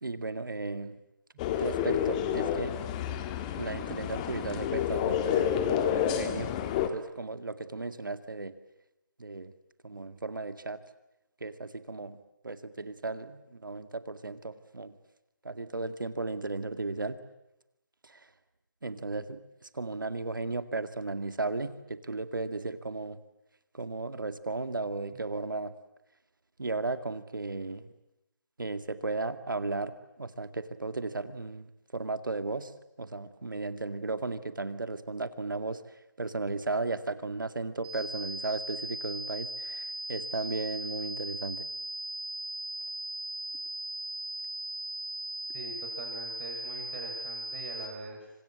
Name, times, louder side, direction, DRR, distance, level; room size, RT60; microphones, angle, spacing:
voice 1, 0.0-0.9 1.6-2.7 3.6-6.5 6.8-8.5 9.2-9.5 9.8-10.8 11.4-12.2 12.4-14.9 15.4-17.2 18.0-18.2 18.8-19.4 19.7-23.2 23.7-25.7 26.6-27.9 28.6-29.9 30.2-31.7 31.9-32.7 33.0-35.8 36.2-39.8 40.1-41.6, right 3 dB, 80° right, 10 dB, 2.2 m, -35 dB
sound 1, 1.4-6.9, left 9 dB, 20° left, 1.8 m, -29 dB
sound 2, 37.8-47.8, right 1 dB, 10° right, 5.3 m, -38 dB
voice 2, 45.5-48.3, right 3 dB, 35° right, 2 dB, 6.9 m, -43 dB
29.0 x 25.5 x 7.6 m, 0.89 s
figure-of-eight pair, 155°, 11 cm